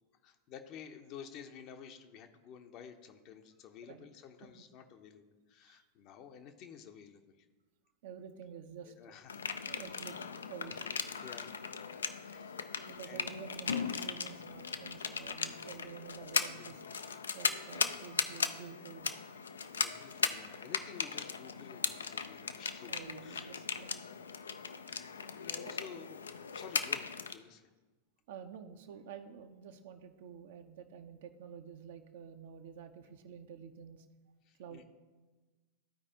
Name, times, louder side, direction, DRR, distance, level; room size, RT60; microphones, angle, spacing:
voice 1, 0.2-7.5 8.8-9.8 10.8-12.6 13.0-13.3 16.5-16.8 19.7-22.9 23.2-23.5 25.1-27.7 34.5-34.8, left 7 dB, 40° left, 7 dB, 0.7 m, -52 dB
voice 2, 8.0-8.9 9.7-10.2 10.5-10.9 12.9-16.8 17.3-19.2 22.9-24.1 25.5-25.8 28.3-34.1 34.6-34.8, right 7 dB, 55° right, 7 dB, 0.6 m, -49 dB
sound 1, 9.3-27.3, left 6 dB, 70° left, 0.4 m, -38 dB
14.5 x 4.8 x 2.8 m, 1.2 s
figure-of-eight pair, 90°, 0 cm